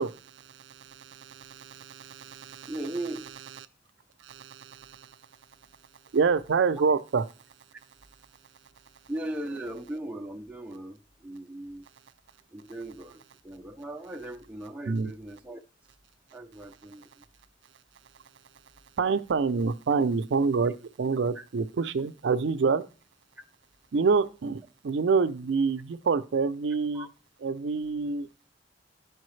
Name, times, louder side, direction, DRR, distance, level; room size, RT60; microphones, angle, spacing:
voice 1, 0.0-2.8 3.6-3.7 4.2-5.2 6.1-7.2 14.9-15.1 19.0-22.8 23.9-27.1 27.4-28.3, right 5 dB, 70° right, 0.4 m, -27 dB
voice 2, 2.7-3.3 9.1-11.8 12.5-15.6 16.3-17.3 21.4-21.5 26.9-27.1, right 1 dB, 5° right, 0.4 m, -38 dB
12.0 x 4.6 x 3.2 m
head